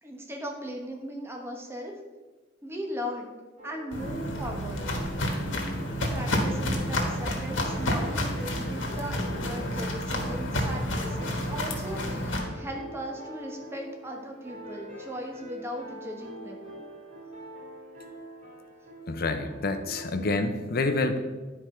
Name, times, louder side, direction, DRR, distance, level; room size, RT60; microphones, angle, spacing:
voice 1, 0.0-1.9 2.6-3.3 3.6-4.9 6.1-16.7, equal, 15° right, 1 dB, 1.0 m, -38 dB
sound 1, 3.6-20.2, right 1 dB, 40° right, 2.4 m, -44 dB
Walk footsteps, 3.9-12.4, left 1 dB, 85° left, 1.4 m, -30 dB
voice 2, 19.1-21.2, left 2 dB, 50° left, 7 dB, 0.7 m, -27 dB
10.5 x 4.7 x 4.4 m, 1.3 s
head